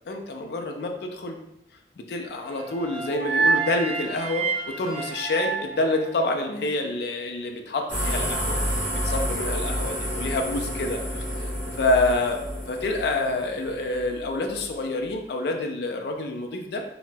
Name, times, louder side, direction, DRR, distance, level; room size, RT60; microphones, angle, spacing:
voice 1, 0.0-1.4 2.0-8.6 8.9-11.0 11.4-11.5 11.8-16.8, left 2 dB, 70° left, 3 dB, 0.4 m, -27 dB
sound 1, 2.5-6.7, right 4 dB, 30° right, 0.3 m, -28 dB
sound 2, 7.9-14.7, equal, 10° right, 0.7 m, -30 dB
4.0 x 2.0 x 2.2 m, 0.80 s
head